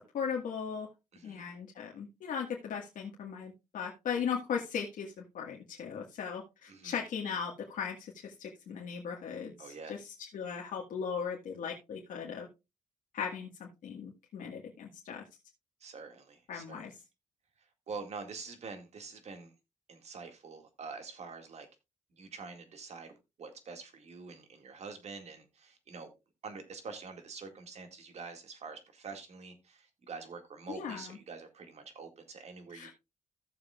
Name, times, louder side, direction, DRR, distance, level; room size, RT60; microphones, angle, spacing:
voice 1, 0.1-0.9 1.2-12.5 13.1-15.2 16.5-16.9 30.7-31.2 32.7-32.9, left 7 dB, 85° left, -1 dB, 1.7 m, -38 dB
voice 2, 1.1-1.5 6.7-7.0 9.6-9.9 15.8-16.9 17.9-19.5 19.9-21.7 22.1-26.1 26.4-32.9, right 4 dB, 55° right, 6 dB, 2.1 m, -46 dB
15.5 x 7.0 x 2.4 m, 0.25 s
cardioid pair, 130°, 13 cm